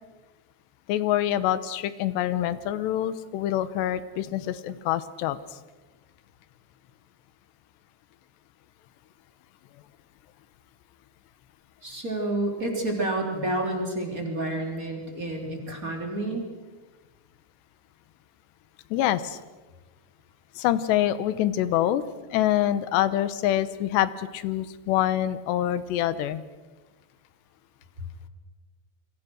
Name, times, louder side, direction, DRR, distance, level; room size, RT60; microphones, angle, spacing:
voice 1, 0.9-5.4 18.9-19.4 20.6-22.0 22.3-26.4, left 12 dB, 80° left, 14 dB, 3.1 m, -25 dB
voice 2, 11.8-16.4, right 1 dB, 20° right, 2 dB, 3.6 m, -29 dB
28.0 x 24.0 x 6.4 m, 1.2 s
omnidirectional pair, 5.1 m